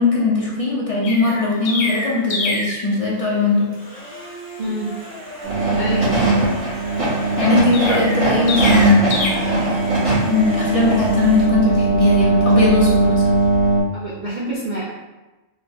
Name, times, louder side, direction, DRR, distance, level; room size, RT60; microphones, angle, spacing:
voice 1, 0.0-3.7 7.4-9.8 10.3-13.3, left 3 dB, 50° left, -5 dB, 0.4 m, -19 dB
Chirp tweet, 1.0-2.8 7.7-9.3, left 2 dB, 85° left, 1.1 m, -25 dB
sound 1, 3.7-11.5, left 1 dB, 10° left, 0.9 m, -35 dB
voice 2, 4.6-4.9 5.8-6.2 13.9-14.8, right 1 dB, 55° right, -8 dB, 0.5 m, -26 dB
sound 2, 5.4-13.8, right 2 dB, 75° right, 1.6 m, -19 dB
4.0 x 2.1 x 2.7 m, 1.1 s
omnidirectional pair, 1.4 m